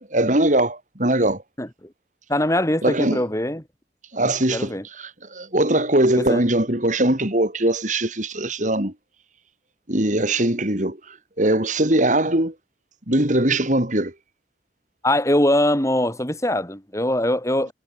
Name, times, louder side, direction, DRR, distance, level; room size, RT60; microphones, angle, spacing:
voice 1, 0.0-1.4 2.8-3.2 4.1-8.9 9.9-11.0 11.4-12.5 13.1-14.1, right 1 dB, 45° right, 3.6 m, -21 dB
voice 2, 2.3-3.6 4.2-4.8 6.1-6.4 15.0-17.7, left 1 dB, 15° left, 5.2 m, -22 dB
head